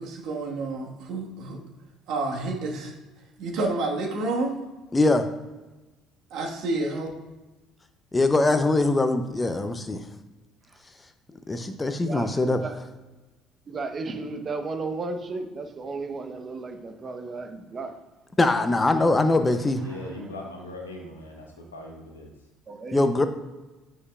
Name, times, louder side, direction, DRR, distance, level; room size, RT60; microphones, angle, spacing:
voice 1, 0.0-1.6 2.1-2.9 3.4-4.6 6.3-7.1, right 2 dB, 60° right, 0 dB, 1.6 m, -29 dB
voice 2, 4.9-5.3 8.1-10.0 11.5-12.6 18.4-19.8 22.9-23.3, left 2 dB, 20° left, 8 dB, 0.7 m, -22 dB
voice 3, 12.1-12.8 13.7-18.0 19.9-20.4 22.7-23.2, right 3 dB, 35° right, 6 dB, 1.0 m, -34 dB
voice 4, 19.8-22.3, left 1 dB, 90° left, 1 dB, 1.1 m, -40 dB
9.4 x 5.4 x 2.5 m, 1.1 s
hypercardioid pair, 60°, 0 cm